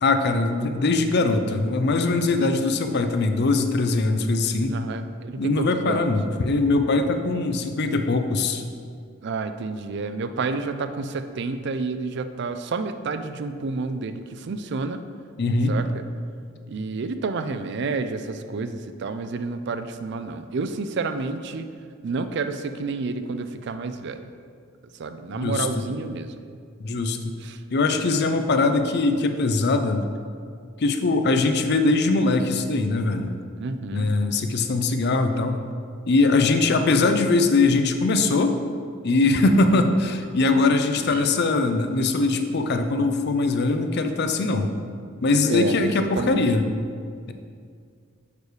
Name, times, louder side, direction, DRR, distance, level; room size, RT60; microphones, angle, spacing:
voice 1, 0.0-4.8 5.4-8.6 15.4-15.7 25.4-25.7 26.8-27.3 27.7-30.0 30.8-33.4 33.9-35.6 36.1-38.6 39.0-44.7 45.2-46.6, left 3 dB, 55° left, 7 dB, 0.5 m, -21 dB
voice 2, 2.4-2.7 4.7-6.1 9.2-15.0 15.7-16.0 16.7-21.7 22.0-24.2 25.0-26.3 27.4-27.6 33.6-34.1 39.7-39.8 40.9-41.3 45.5-46.4, right 4 dB, 60° right, 9 dB, 0.4 m, -30 dB
6.7 x 4.8 x 4.9 m, 2.2 s
head